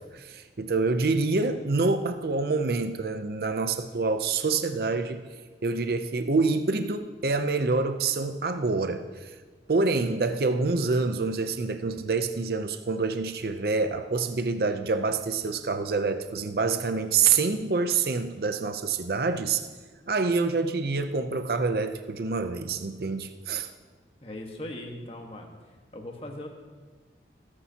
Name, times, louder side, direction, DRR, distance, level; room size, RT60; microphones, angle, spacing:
voice 1, 0.1-5.2 5.6-9.3 9.7-19.7 20.1-23.7, right 4 dB, 55° right, 8 dB, 0.6 m, -26 dB
voice 2, 24.2-25.5 25.9-26.5, left 1 dB, 30° left, 2 dB, 1.4 m, -39 dB
19.0 x 9.9 x 2.9 m, 1.4 s
head